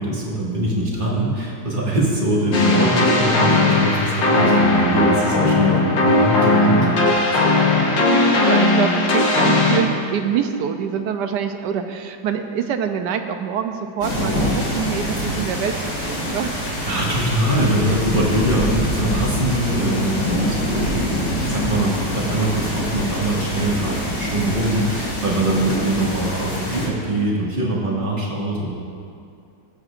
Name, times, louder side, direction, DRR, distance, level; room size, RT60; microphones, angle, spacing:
voice 1, 0.0-7.1 7.5-7.6 16.8-28.7, right 1 dB, 30° right, -5 dB, 1.9 m, -22 dB
sound 1, 2.5-9.8, left 2 dB, 80° left, 1.9 m, -17 dB
voice 2, 7.9-16.5 28.1-28.2, right 8 dB, 75° right, 7 dB, 1.2 m, -25 dB
sound 2, 14.0-26.9, equal, 45° left, 2.8 m, -25 dB
19.0 x 7.8 x 2.5 m, 2.4 s
omnidirectional pair, 2.0 m